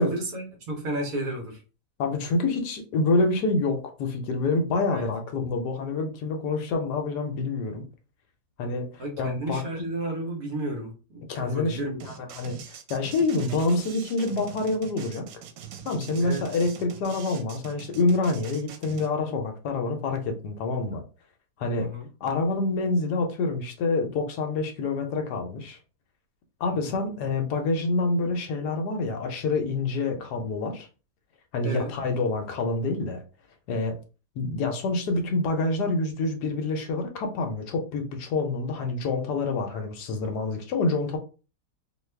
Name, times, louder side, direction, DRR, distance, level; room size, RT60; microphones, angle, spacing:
voice 1, 0.0-1.6 4.9-5.1 9.0-12.3 16.2-16.5 21.8-22.1 26.8-26.9 31.6-31.9, right 1 dB, 60° right, 1.2 m, -33 dB
voice 2, 2.0-7.8 8.6-9.6 11.3-15.2 15.8-21.0 21.6-21.9 22.2-25.8 26.6-30.9 31.5-33.2 33.7-34.0 34.4-41.2, left 3 dB, 75° left, 1.2 m, -27 dB
sound 1, 12.0-19.1, right 9 dB, 85° right, 1.2 m, -43 dB
2.9 x 2.3 x 3.2 m
omnidirectional pair, 1.8 m